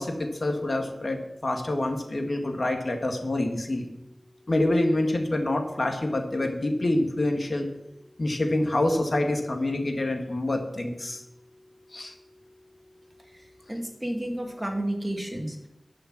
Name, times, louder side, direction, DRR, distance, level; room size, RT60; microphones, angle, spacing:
voice 1, 0.0-3.9 4.5-7.7 8.2-11.2 11.9-12.1, left 1 dB, 55° left, 3 dB, 1.8 m, -26 dB
voice 2, 13.7-15.7, right 1 dB, 15° right, 3 dB, 2.0 m, -31 dB
11.5 x 5.7 x 7.3 m, 0.90 s
wide cardioid pair, 50°, 0 cm